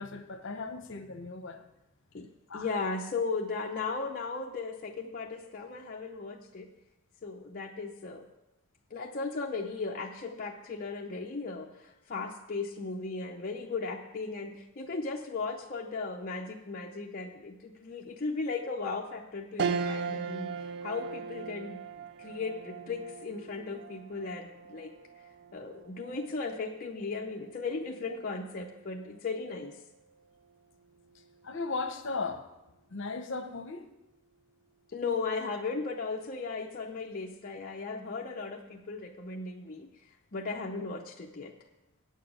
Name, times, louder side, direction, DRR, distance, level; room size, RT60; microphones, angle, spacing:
voice 1, 0.0-1.7 2.5-2.7 31.4-32.5 32.9-33.9, left 3 dB, 60° left, 7 dB, 1.0 m, -36 dB
voice 2, 2.5-6.7 7.2-8.3 8.9-21.8 22.2-24.9 25.5-29.8 34.9-39.9 40.3-41.5, left 4 dB, 45° left, -1 dB, 0.6 m, -36 dB
sound 1, 19.6-29.2 29.7-29.8 31.1-31.6, right 5 dB, 50° right, 0.4 m, -39 dB
8.6 x 7.4 x 7.1 m, 0.96 s
head